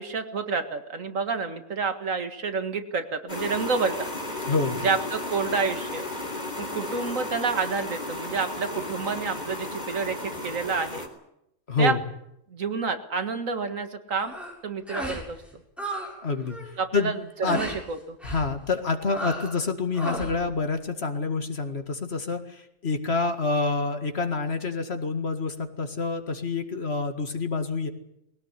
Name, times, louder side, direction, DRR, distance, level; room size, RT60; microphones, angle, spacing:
voice 1, 0.0-4.1 4.8-6.1 6.6-11.1 11.8-11.9 12.5-14.3 14.6-15.4 16.8-17.2 17.5-18.2, right 4 dB, 85° right, 8 dB, 2.2 m, -29 dB
sound 1, 3.3-11.1, left 1 dB, 35° left, 3.7 m, -34 dB
voice 2, 4.5-4.8 11.7-12.0 16.2-16.6 16.9-17.2 17.4-17.6 18.2-27.9, left 4 dB, 55° left, 7 dB, 2.2 m, -27 dB
sound 2, 14.2-14.5 14.9-15.3 15.5-16.1 16.4-16.7 17.4-17.8 18.2-18.5 19.1-19.6 19.9-20.4, right 1 dB, ahead, 7.0 m, -34 dB
21.0 x 17.5 x 9.8 m, 0.81 s
omnidirectional pair, 1.3 m